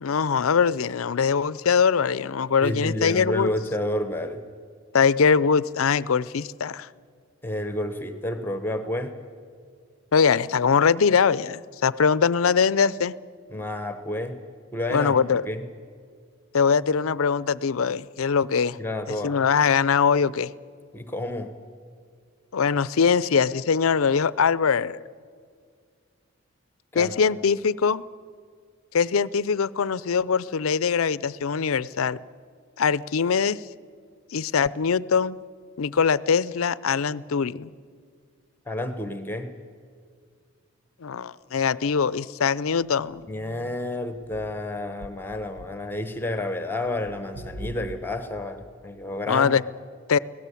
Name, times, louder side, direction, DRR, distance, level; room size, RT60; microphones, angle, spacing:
voice 1, 0.0-3.5 4.9-6.9 10.1-13.1 14.9-15.5 16.5-18.8 19.1-20.5 22.5-25.0 26.9-28.0 28.9-32.2 32.8-33.6 34.3-35.4 35.8-37.7 41.0-43.2 49.3-49.6 50.1-50.2, left 6 dB, 80° left, 19 dB, 0.5 m, -22 dB
voice 2, 2.6-4.4 7.4-9.1 13.5-14.4 14.7-15.1 15.5-15.6 18.8-19.4 20.9-21.5 26.9-27.2 38.7-39.5 43.3-49.5, left 1 dB, 10° left, 9 dB, 1.0 m, -30 dB
sound 1, 42.8-43.8 44.2-45.8 46.1-46.5 46.8-48.0, equal, 85° right, 1.4 m, -43 dB
25.0 x 17.5 x 8.4 m, 2.1 s
head